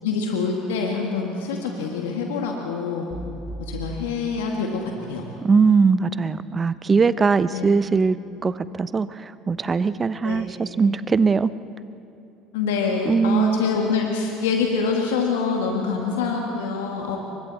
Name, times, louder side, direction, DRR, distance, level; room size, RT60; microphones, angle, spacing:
voice 1, 0.0-3.1 3.6-5.2 7.5-7.7 10.2-10.4 12.5-17.2, left 5 dB, 80° left, 1 dB, 2.0 m, -25 dB
sound 1, 3.1-5.3, right 1 dB, ahead, 6.9 m, -38 dB
voice 2, 5.4-8.2 8.4-11.5 13.1-13.6, right 5 dB, 30° right, 15 dB, 0.8 m, -20 dB
30.0 x 24.0 x 4.3 m, 2.7 s
hypercardioid pair, 65°, 0 cm